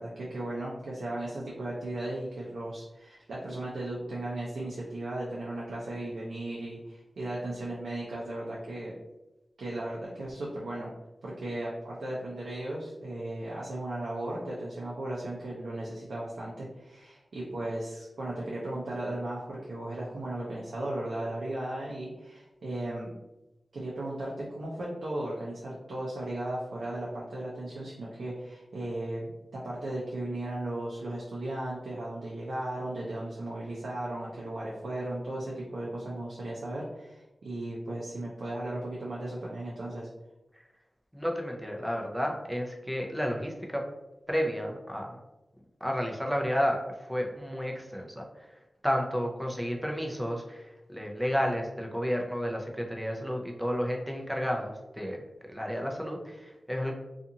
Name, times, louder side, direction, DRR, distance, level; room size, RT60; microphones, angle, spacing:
voice 1, 0.0-8.9 9.6-10.9 11.2-23.1 23.7-40.1, right 1 dB, 90° right, -5 dB, 0.5 m, -36 dB
voice 2, 41.1-43.8 44.3-45.2 45.8-48.5 48.8-55.2 55.5-56.9, equal, ahead, 1 dB, 0.5 m, -31 dB
2.5 x 2.4 x 2.7 m, 0.98 s
wide cardioid pair, 70°, 0 cm